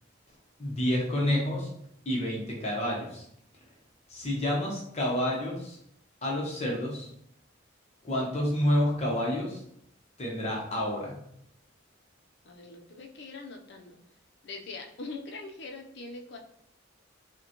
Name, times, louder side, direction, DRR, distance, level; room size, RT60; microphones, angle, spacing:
voice 1, 0.6-1.7 2.1-3.3 4.1-5.8 6.2-7.1 8.0-9.6 10.2-11.2, left 1 dB, 35° left, -2 dB, 0.9 m, -29 dB
voice 2, 12.4-14.0 14.4-16.4, left 3 dB, 60° left, 2 dB, 0.6 m, -42 dB
5.0 x 2.2 x 2.9 m, 0.71 s
head